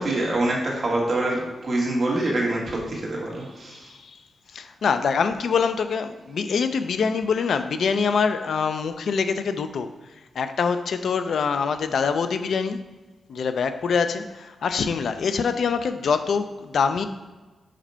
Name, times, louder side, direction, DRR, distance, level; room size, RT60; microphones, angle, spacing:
voice 1, 0.0-1.4 1.6-2.6 2.9-3.8, right 2 dB, 35° right, -2 dB, 1.5 m, -25 dB
voice 2, 4.5-9.9 10.4-12.8 13.3-17.1, left 5 dB, 60° left, 9 dB, 0.3 m, -24 dB
4.9 x 4.3 x 5.5 m, 1.2 s
wide cardioid pair, 180°, 0 cm